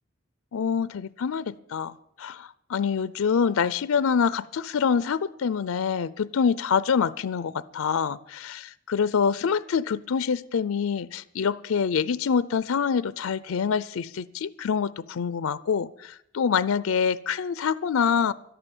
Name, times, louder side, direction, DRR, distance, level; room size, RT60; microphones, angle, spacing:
voice 1, 0.5-18.3, left 6 dB, 90° left, 18 dB, 0.5 m, -26 dB
12.5 x 11.0 x 7.2 m, 0.77 s
head